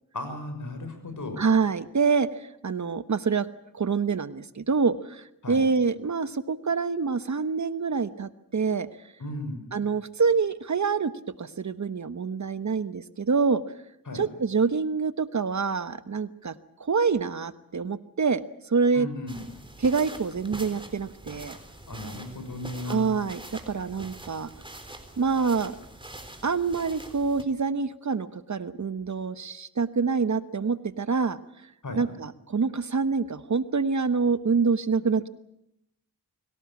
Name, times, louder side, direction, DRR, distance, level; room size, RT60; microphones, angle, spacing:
voice 1, 0.1-1.4 5.4-5.6 9.2-9.6 14.1-14.2 18.9-19.4 21.9-23.1 31.8-32.0, left 2 dB, 60° left, 7 dB, 6.3 m, -35 dB
voice 2, 1.4-3.5 3.7-8.9 9.7-11.1 11.4-13.6 14.1-16.5 16.8-19.1 19.8-21.6 22.9-23.4 23.7-24.5 25.2-25.8 26.4-31.4 32.0-35.3, right 5 dB, 55° right, 13 dB, 1.1 m, -26 dB
sound 1, 19.3-27.4, right 1 dB, 15° right, 3.9 m, -44 dB
24.5 x 17.5 x 8.4 m, 0.79 s
cardioid pair, 55°, 35 cm